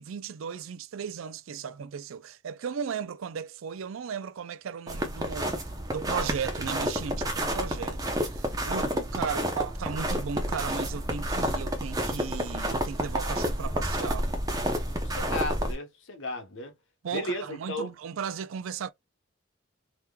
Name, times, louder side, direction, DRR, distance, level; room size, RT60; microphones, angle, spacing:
voice 1, 0.0-5.6 5.9-14.3 17.0-18.9, right 6 dB, 85° right, 0.4 m, -36 dB
sound 1, 4.9-15.7, equal, 20° right, 0.6 m, -30 dB
voice 2, 15.0-16.7 17.1-17.9, left 1 dB, 75° left, 1.0 m, -34 dB
3.6 x 2.9 x 2.2 m
head